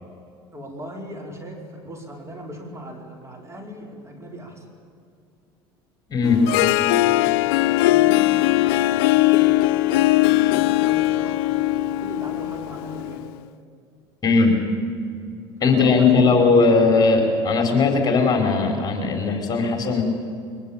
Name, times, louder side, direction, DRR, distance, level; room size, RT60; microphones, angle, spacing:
voice 1, 0.5-4.6 6.9-8.4 8.7-11.4 11.8-13.3 15.7-16.4, equal, 20° right, 2 dB, 4.8 m, -39 dB
voice 2, 6.1-6.5 14.2-14.6 15.6-20.0, left 4 dB, 30° left, 4 dB, 5.0 m, -18 dB
Harp, 6.2-13.3, left 16 dB, 75° left, 0.5 m, -20 dB
22.5 x 21.0 x 8.9 m, 2.4 s
hypercardioid pair, 85°, 13 cm